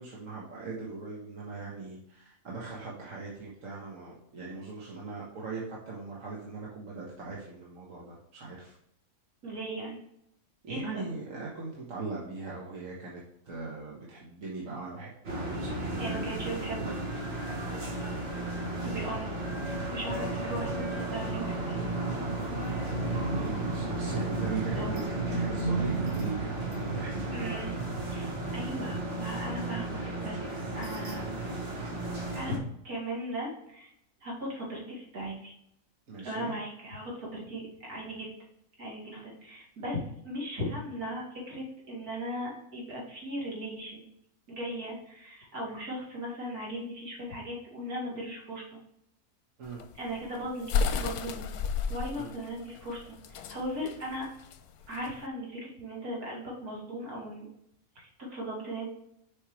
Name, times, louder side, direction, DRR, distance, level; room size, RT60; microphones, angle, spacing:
voice 1, 0.0-8.7 10.6-16.2 23.1-27.3 36.1-36.5 49.6-49.8 52.2-52.3, right 4 dB, 60° right, -4 dB, 1.6 m, -40 dB
voice 2, 9.4-10.0 10.7-11.1 16.0-16.9 18.8-21.8 24.1-24.2 24.7-25.0 26.0-26.1 27.3-27.8 28.1-30.4 30.7-31.3 32.3-33.9 34.2-35.5 36.2-38.3 38.8-44.1 44.5-48.8 50.0-51.5 51.9-53.0 53.3-54.3 54.9-57.5 58.0-58.9, equal, 80° right, -3 dB, 2.8 m, -38 dB
sound 1, 15.2-32.6, right 2 dB, 45° right, 1.5 m, -33 dB
sound 2, 49.7-55.2, left 5 dB, 90° left, 1.1 m, -32 dB
6.7 x 5.5 x 3.2 m, 0.76 s
omnidirectional pair, 1.6 m